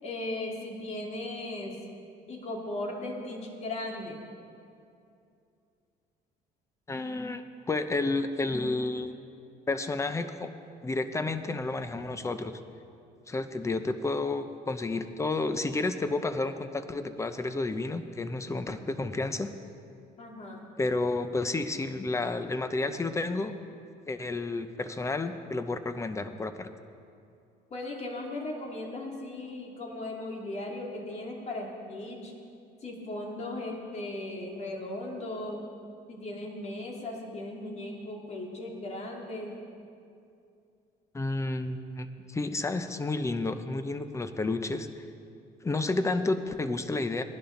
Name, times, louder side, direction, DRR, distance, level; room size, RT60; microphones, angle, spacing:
voice 1, 0.0-1.8 2.3-4.2 20.2-20.7 27.7-32.3 32.8-35.6 36.1-39.6, left 2 dB, 40° left, -1 dB, 2.5 m, -37 dB
voice 2, 6.9-9.2 9.7-10.5 10.8-12.5 13.3-19.5 20.8-23.5 24.1-26.7 41.1-45.0 45.6-47.2, left 2 dB, 15° left, 10 dB, 0.7 m, -31 dB
19.0 x 11.0 x 3.9 m, 2.5 s
cardioid pair, 110°, 17 cm